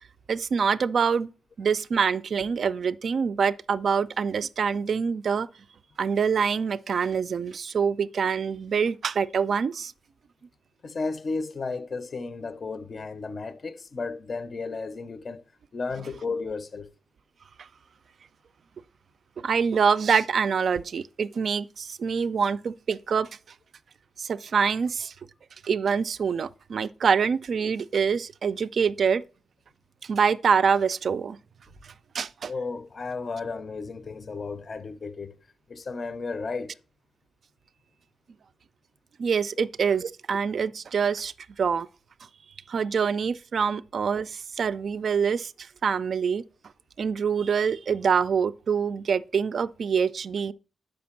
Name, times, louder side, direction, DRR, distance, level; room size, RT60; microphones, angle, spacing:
voice 1, 0.3-1.3 1.6-5.5 6.0-9.9 19.4-23.3 24.2-25.1 25.6-29.2 30.0-31.4 32.1-32.5 39.2-41.3 41.6-41.9 42.7-45.5 45.8-46.4 47.0-50.5, right 6 dB, 55° right, 0.3 m, -25 dB
voice 2, 10.8-15.4 15.7-16.9 32.5-35.4 35.7-36.8 39.6-39.7, left 4 dB, 40° left, 0.5 m, -33 dB
6.4 x 5.2 x 5.7 m
cardioid pair, 120°, 0 cm